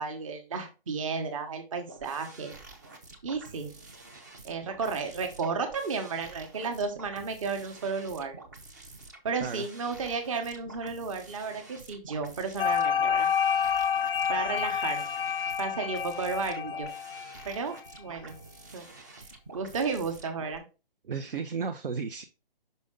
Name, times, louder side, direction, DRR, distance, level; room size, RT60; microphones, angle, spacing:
voice 1, 0.0-2.5 3.2-3.7 4.4-8.4 9.2-13.3 14.3-15.1 15.6-16.9 17.4-18.3 18.7-18.8 19.2-19.3 19.5-20.6, right 5 dB, 35° right, 5 dB, 1.1 m, -33 dB
sound 1, 1.9-20.6, right 2 dB, 20° right, 0.5 m, -49 dB
sound 2, 12.6-17.7, left 7 dB, 70° left, 0.5 m, -28 dB
voice 2, 21.0-22.2, right 5 dB, 70° right, 6 dB, 0.7 m, -33 dB
5.5 x 5.2 x 3.7 m, 0.31 s
hypercardioid pair, 160°, 29 cm